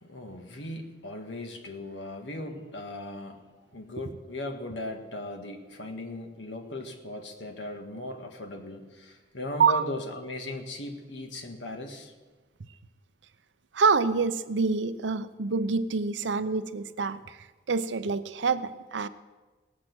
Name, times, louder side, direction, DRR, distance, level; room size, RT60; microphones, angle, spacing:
voice 1, 0.0-3.4 3.7-12.1, left 1 dB, 90° left, 4 dB, 1.8 m, -38 dB
voice 2, 13.7-17.4 17.7-19.1, right 5 dB, 90° right, 13 dB, 0.6 m, -26 dB
18.5 x 7.6 x 6.1 m, 1.3 s
head